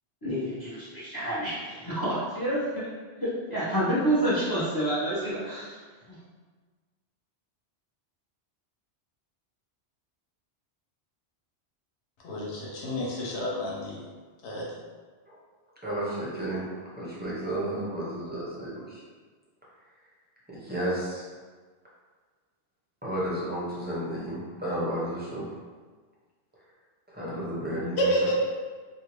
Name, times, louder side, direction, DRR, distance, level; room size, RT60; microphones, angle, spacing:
voice 1, 0.2-2.9 3.2-5.8, right 1 dB, 20° left, -10 dB, 0.8 m, -28 dB
voice 2, 12.2-14.0 14.4-14.7 28.0-28.3, equal, 70° left, -4 dB, 1.0 m, -29 dB
voice 3, 15.8-16.7 17.0-19.0 20.5-21.2 23.0-25.5 27.1-28.1, right 1 dB, 10° right, -8 dB, 0.6 m, -32 dB
2.7 x 2.6 x 3.0 m, 1.4 s
omnidirectional pair, 1.1 m